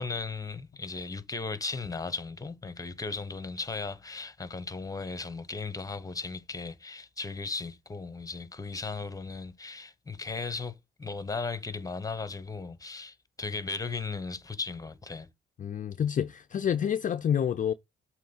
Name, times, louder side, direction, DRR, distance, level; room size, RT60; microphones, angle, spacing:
voice 1, 0.0-10.7 11.0-15.3, left 4 dB, 15° left, 1.0 m, -36 dB
voice 2, 15.6-17.7, left 9 dB, 40° left, 0.5 m, -28 dB
7.5 x 3.1 x 5.3 m
cardioid pair, 90°, 20 cm